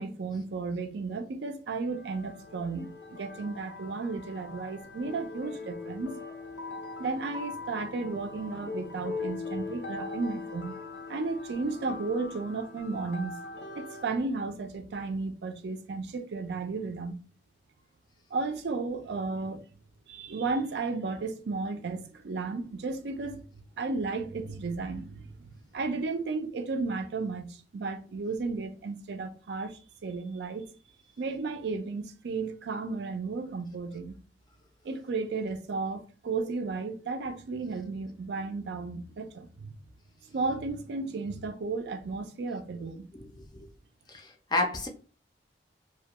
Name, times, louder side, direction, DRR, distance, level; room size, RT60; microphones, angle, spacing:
voice 1, 0.0-6.2 7.0-10.7 11.1-13.4 13.8-17.2 18.3-19.6 20.1-30.6 31.2-34.2 34.8-39.8 40.3-43.1, right 3 dB, 75° right, 0.4 m, -34 dB
sound 1, 1.8-14.2, left 3 dB, 85° left, 0.6 m, -41 dB
voice 2, 44.1-44.9, left 2 dB, 25° left, 0.4 m, -30 dB
2.3 x 2.1 x 2.9 m
head